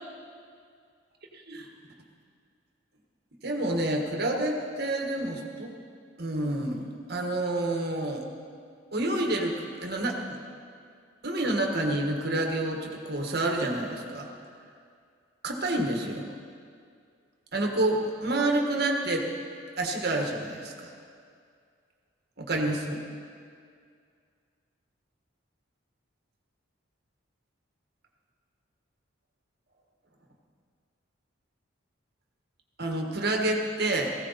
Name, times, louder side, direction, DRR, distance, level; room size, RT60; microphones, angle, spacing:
voice 1, 3.4-5.7 6.2-8.2 8.9-10.4 11.2-14.3 15.4-16.3 17.5-19.2 19.8-20.9 22.4-23.0 32.8-34.1, right 1 dB, 55° right, 1 dB, 1.6 m, -28 dB
17.5 x 15.5 x 4.2 m, 2.2 s
head